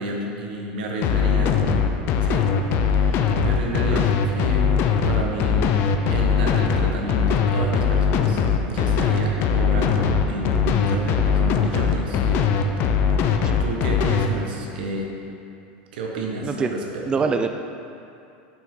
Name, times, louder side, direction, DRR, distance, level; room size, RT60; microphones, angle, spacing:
voice 1, 0.0-1.7 2.2-2.5 2.8-4.7 5.1-5.7 6.1-12.5 12.9-13.0 13.6-15.1 15.9-17.2, right 1 dB, 90° right, 0 dB, 1.3 m, -30 dB
sound 1, 1.0-14.3, left 6 dB, 50° left, 0.6 m, -20 dB
voice 2, 17.1-17.5, right 5 dB, 20° right, 6 dB, 0.3 m, -24 dB
8.8 x 6.1 x 3.8 m, 2.7 s
supercardioid pair, 125°, 5 cm